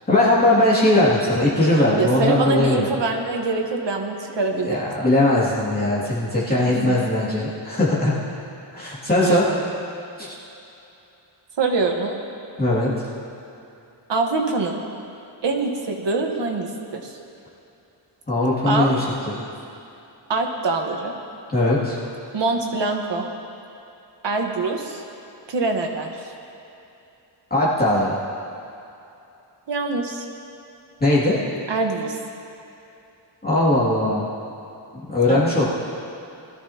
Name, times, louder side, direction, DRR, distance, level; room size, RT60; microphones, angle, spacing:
voice 1, 0.1-2.9 4.6-8.1 8.7-9.4 10.2-10.3 12.6-12.9 18.3-19.5 21.5-22.0 27.5-28.2 31.0-31.4 33.4-34.3 35.0-35.7, left 1 dB, 20° left, -8 dB, 2.3 m, -19 dB
voice 2, 2.0-5.1 6.7-7.0 8.7-9.7 11.6-12.2 14.1-14.8 15.4-17.1 18.7-19.0 20.3-21.1 22.3-23.3 24.2-25.0 25.5-26.3 29.7-30.3 31.7-32.2 35.3-35.5, right 3 dB, 65° right, 2 dB, 1.3 m, -24 dB
21.0 x 13.5 x 2.8 m, 2.8 s
wide cardioid pair, 180°, 45 cm